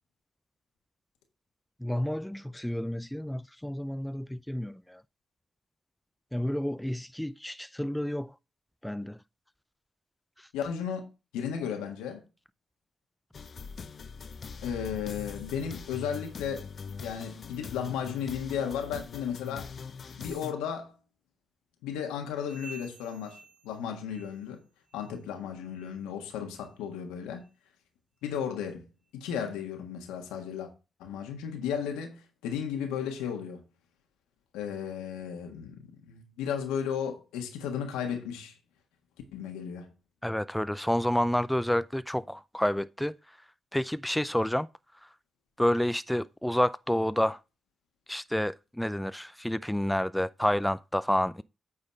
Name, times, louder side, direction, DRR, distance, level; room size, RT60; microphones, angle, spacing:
voice 1, 1.8-5.0 6.3-8.3 8.8-9.2 40.2-43.2 43.7-44.7 45.6-47.4 48.1-51.4, left 1 dB, 5° left, 0.4 m, -29 dB
voice 2, 10.5-11.1 11.3-12.2 14.6-16.7 17.0-19.7 20.2-20.9 21.8-24.6 24.9-27.4 28.2-28.9 29.1-30.7 31.0-33.6 34.5-38.6 39.3-39.9, left 8 dB, 85° left, 1.4 m, -34 dB
sound 1, 13.3-20.5, left 5 dB, 55° left, 0.8 m, -42 dB
sound 2, 22.4-24.6 24.9-25.3 25.7-25.9 26.5-26.7 27.4-27.5 28.2-28.3, right 3 dB, 85° right, 1.6 m, -51 dB
8.7 x 4.1 x 5.2 m
hypercardioid pair, 40°, 0 cm